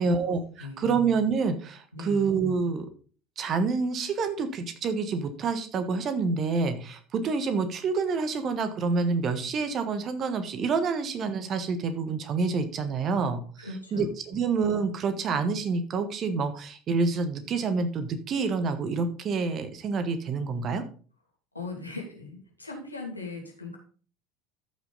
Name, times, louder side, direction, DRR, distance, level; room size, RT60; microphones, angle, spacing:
voice 1, 0.0-2.9 3.4-20.8, right 4 dB, 40° right, 10 dB, 1.5 m, -28 dB
voice 2, 0.6-1.0 1.9-2.2 13.6-14.1 21.5-23.8, left 3 dB, 90° left, 0 dB, 2.5 m, -39 dB
13.5 x 6.1 x 4.0 m, 0.40 s
figure-of-eight pair, 70°, 0 cm